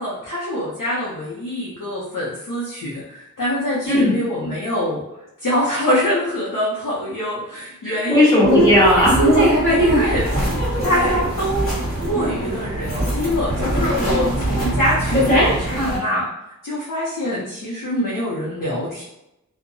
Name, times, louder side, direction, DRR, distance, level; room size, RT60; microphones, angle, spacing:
voice 1, 0.0-5.0 5.4-8.3 9.7-10.3 10.8-11.7 12.1-16.3 16.6-19.0, equal, 80° left, -7 dB, 0.7 m, -24 dB
voice 2, 3.9-4.2 7.8-9.5, left 1 dB, 10° left, -9 dB, 1.5 m, -16 dB
sound 1, 8.5-16.0, right 1 dB, 40° left, 1.5 m, -21 dB
2.7 x 2.1 x 2.6 m, 0.87 s
wide cardioid pair, 55°, 32 cm